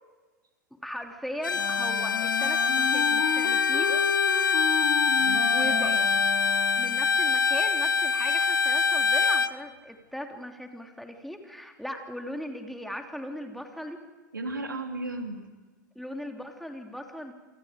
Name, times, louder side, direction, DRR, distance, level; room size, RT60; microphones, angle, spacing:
voice 1, 0.8-4.0 5.5-5.9 6.8-14.0 15.9-17.3, equal, ahead, 3 dB, 3.1 m, -38 dB
Bowed string instrument, 1.4-9.5, left 4 dB, 85° left, 1.0 m, -24 dB
Wind instrument woodwind instrument, 1.5-7.1, left 9 dB, 50° left, 3.4 m, -33 dB
voice 2, 5.2-6.1 14.3-15.5, right 2 dB, 90° right, 4 dB, 3.2 m, -35 dB
29.5 x 24.5 x 5.2 m, 1.2 s
figure-of-eight pair, 95°, 10 cm